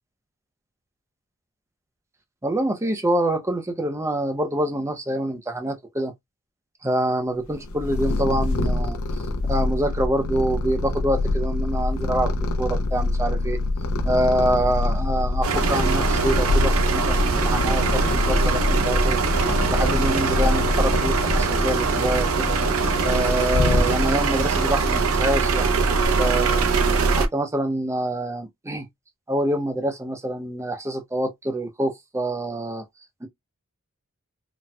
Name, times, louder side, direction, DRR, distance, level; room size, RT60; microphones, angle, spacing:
voice 1, 2.4-6.1 6.8-12.3 12.6-13.6 14.0-19.2 19.6-22.6 23.0-26.7 27.2-28.9 29.3-32.8 33.2-33.3, right 1 dB, 15° right, 0.6 m, -26 dB
Purr, 7.5-24.3, left 2 dB, 80° left, 0.6 m, -25 dB
sound 1, 15.4-27.3, right 4 dB, 90° right, 0.6 m, -22 dB
4.1 x 2.2 x 2.2 m
head